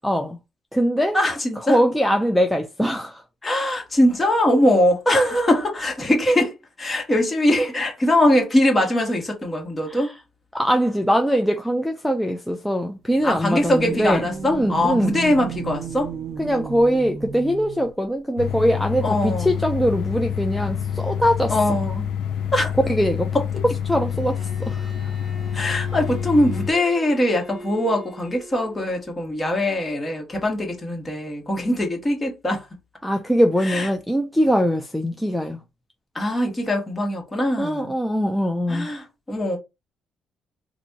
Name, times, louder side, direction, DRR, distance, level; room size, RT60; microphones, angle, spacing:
voice 1, 0.0-0.4 0.7-1.2 1.7-3.2 9.9-10.1 10.5-14.2 14.5-15.1 16.4-21.9 22.9-23.3 23.9-24.9 33.0-35.6 37.6-38.9, equal, ahead, 0.5 m, -22 dB
voice 2, 1.1-1.8 3.4-10.1 13.2-16.1 19.0-19.6 21.5-22.0 22.5-22.7 25.5-32.7 33.6-33.9 36.1-37.9 38.7-39.6, left 1 dB, 25° left, 1.7 m, -22 dB
sound 1, 13.1-17.9, right 7 dB, 65° right, 0.6 m, -33 dB
sound 2, 18.4-26.7, left 8 dB, 80° left, 0.6 m, -27 dB
Bowed string instrument, 24.1-28.9, right 2 dB, 25° right, 2.4 m, -41 dB
4.1 x 2.7 x 2.8 m
cardioid pair, 90°, 0 cm